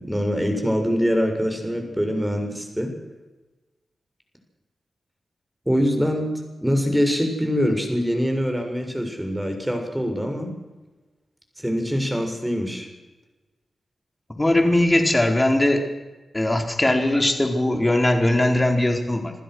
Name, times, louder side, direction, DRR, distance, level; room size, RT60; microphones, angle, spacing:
voice 1, 0.0-2.9 5.7-6.3 6.6-10.5 11.6-12.9, equal, 5° right, 4 dB, 7.1 m, -24 dB
voice 2, 14.4-15.8 16.3-19.3, left 1 dB, 20° left, 4 dB, 4.5 m, -20 dB
28.0 x 15.0 x 6.5 m, 1.1 s
cardioid pair, 50°, 0 cm